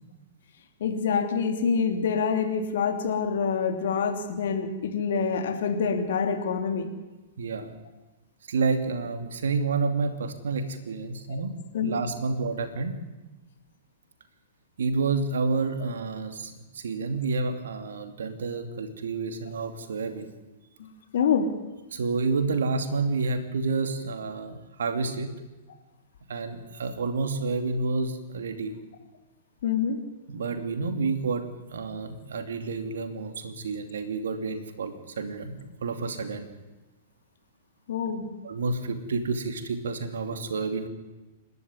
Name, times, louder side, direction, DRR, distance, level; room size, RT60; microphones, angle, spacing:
voice 1, 0.8-6.9 11.7-12.0 20.8-20.9 21.1-21.5 29.6-30.0 37.9-38.3, left 6 dB, 60° left, 5 dB, 3.2 m, -26 dB
voice 2, 7.4-7.7 8.5-12.9 14.8-20.3 21.9-25.3 26.3-28.7 30.3-31.5 31.7-36.5 38.4-40.9, right 4 dB, 70° right, 8 dB, 2.7 m, -29 dB
27.5 x 12.0 x 9.8 m, 1.1 s
figure-of-eight pair, 105°, 0 cm